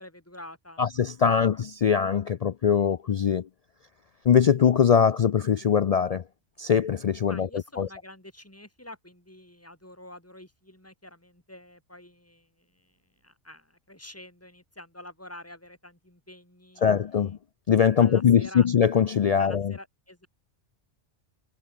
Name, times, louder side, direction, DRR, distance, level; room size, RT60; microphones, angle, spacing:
voice 1, 0.0-0.9 1.3-1.6 7.3-17.3 18.0-18.7 19.4-20.3, left 1 dB, 10° left, 5.1 m, -47 dB
voice 2, 0.8-3.5 4.3-6.2 6.6-7.5 7.8-7.9 16.8-17.4 17.7-19.7, left 7 dB, 70° left, 0.3 m, -22 dB
omnidirectional pair, 1.2 m